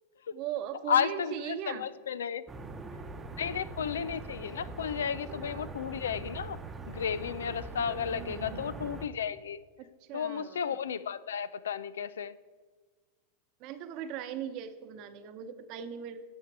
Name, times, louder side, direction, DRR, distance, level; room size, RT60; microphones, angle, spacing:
voice 1, 0.3-1.9 5.4-5.8 7.7-8.8 9.8-10.6 13.6-16.2, right 9 dB, 50° right, 10 dB, 0.9 m, -40 dB
voice 2, 0.9-1.3 1.7-2.4 3.4-6.6 6.9-9.6 10.1-12.3, left 7 dB, 85° left, 17 dB, 0.4 m, -33 dB
sound 1, 2.5-9.1, right 3 dB, 20° right, 0.8 m, -42 dB
10.5 x 7.4 x 4.6 m, 1.5 s
hypercardioid pair, 110°, 0 cm